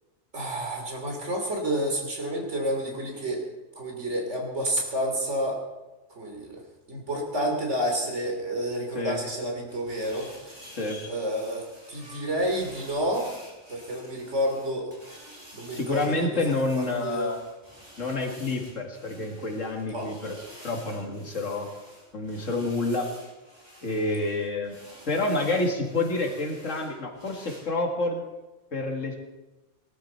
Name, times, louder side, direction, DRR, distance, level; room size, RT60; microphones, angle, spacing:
voice 1, 0.3-3.4 3.8-5.6 6.1-6.6 6.9-10.7 11.1-13.4 13.7-14.9 15.5-16.4 16.7-17.3 19.9-20.1, equal, 70° right, 1 dB, 3.3 m, -29 dB
sound 1, 9.7-27.6, equal, 20° right, 4.0 m, -49 dB
voice 2, 10.7-11.0 15.7-17.4 18.0-20.4 20.6-21.7 22.1-23.1 23.8-24.8 25.1-28.2 28.7-29.1, left 2 dB, 90° left, 2 dB, 2.5 m, -28 dB
19.5 x 12.5 x 4.4 m, 1.1 s
omnidirectional pair, 1.3 m